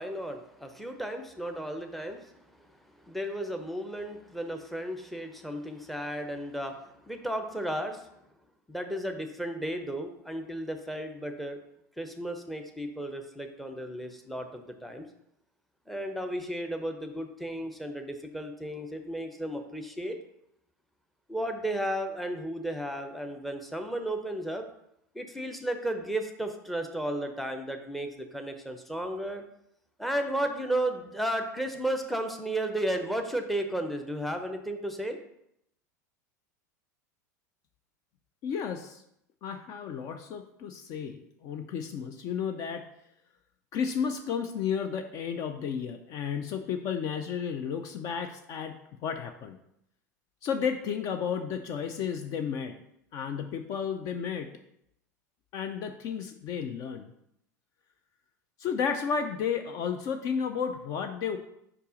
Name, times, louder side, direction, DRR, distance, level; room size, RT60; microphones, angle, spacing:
voice 1, 0.0-8.1 8.7-11.6 12.0-15.1 15.9-20.2 21.3-24.7 25.1-29.4 30.0-35.2, right 1 dB, ahead, 5 dB, 0.7 m, -34 dB
voice 2, 38.4-39.0 39.4-42.8 43.7-49.6 50.4-52.8 53.1-54.5 55.5-57.1 58.6-61.4, left 7 dB, 40° left, 7 dB, 0.4 m, -32 dB
4.9 x 4.6 x 4.9 m, 0.77 s
figure-of-eight pair, 80°, 9 cm